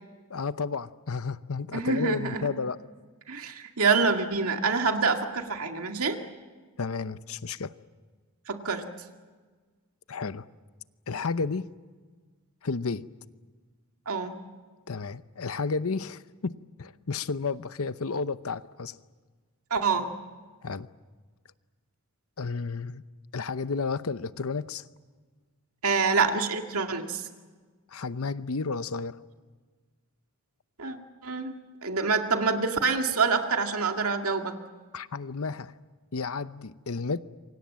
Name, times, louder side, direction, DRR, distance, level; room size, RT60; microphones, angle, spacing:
voice 1, 0.3-2.8 6.8-7.7 10.1-10.5 11.1-11.7 12.6-13.1 14.9-19.0 20.6-20.9 22.4-23.0 23.3-24.9 27.9-29.2 34.9-35.7 36.1-37.2, left 4 dB, 75° left, 0.8 m, -32 dB
voice 2, 1.7-2.5 3.3-6.2 8.5-8.8 14.1-14.3 19.7-20.1 25.8-27.2 30.8-31.0 31.2-31.5 31.8-34.5, right 4 dB, 80° right, 2.1 m, -26 dB
27.5 x 24.5 x 7.5 m
head